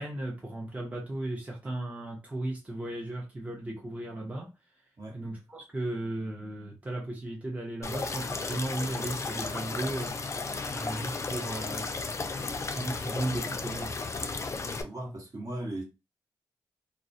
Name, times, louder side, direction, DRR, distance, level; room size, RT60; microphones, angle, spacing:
voice 1, 0.0-4.5 5.1-10.2 10.7-11.9 12.4-13.9, right 1 dB, 20° right, 0.7 m, -35 dB
sound 1, 7.8-14.8, left 4 dB, 40° left, 0.4 m, -34 dB
voice 2, 14.6-15.8, right 1 dB, 50° right, 1.1 m, -38 dB
2.3 x 2.1 x 2.6 m
supercardioid pair, 45°, 8 cm